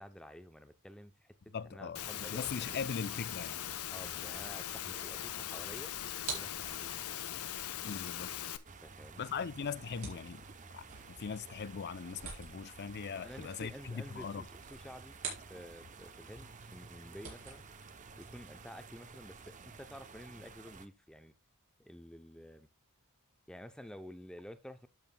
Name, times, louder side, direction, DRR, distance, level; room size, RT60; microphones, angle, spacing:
voice 1, 0.0-1.3 1.6-2.8 3.9-5.9 6.3-7.0 8.8-9.4 13.2-14.4 14.7-15.2 15.5-17.7 18.2-21.3 21.8-22.7 23.5-24.9, equal, 5° left, 0.6 m, -51 dB
voice 2, 1.5-2.0 2.3-3.7 7.8-8.5 9.2-10.4 10.7-14.5, left 6 dB, 50° left, 0.5 m, -40 dB
Engine / Mechanisms, 1.9-8.6, left 10 dB, 85° left, 0.8 m, -40 dB
sound 1, 2.4-16.0 16.3-18.8, right 4 dB, 65° right, 4.8 m, -50 dB
sound 2, 8.6-20.9, right 4 dB, 35° right, 0.7 m, -53 dB
12.0 x 7.7 x 2.2 m
head